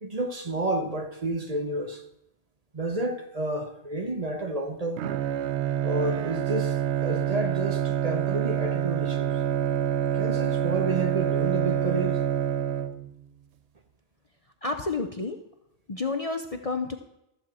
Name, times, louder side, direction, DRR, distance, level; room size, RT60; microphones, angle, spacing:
voice 1, 0.0-2.0 2.7-5.0 5.8-9.4 10.1-12.2, right 2 dB, 35° right, 1.0 m, -30 dB
Bowed string instrument, 5.0-13.3, right 10 dB, 75° right, 0.9 m, -27 dB
voice 2, 14.6-15.4 15.9-17.0, left 3 dB, 40° left, 0.6 m, -30 dB
13.5 x 4.5 x 7.4 m
omnidirectional pair, 1.2 m